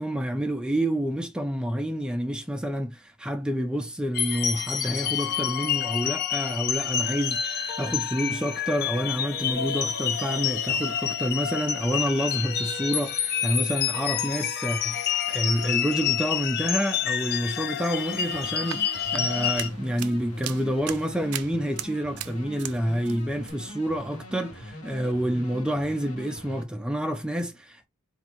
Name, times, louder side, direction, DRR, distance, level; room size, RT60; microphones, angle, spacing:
voice 1, 0.0-27.9, equal, 5° right, 0.3 m, -28 dB
sound 1, 4.1-19.7, left 8 dB, 45° left, 0.5 m, -28 dB
sound 2, 18.0-26.6, left 1 dB, 80° left, 1.1 m, -42 dB
sound 3, 18.5-22.8 23.0-23.5, right 12 dB, 80° right, 0.4 m, -38 dB
4.4 x 2.5 x 3.0 m
head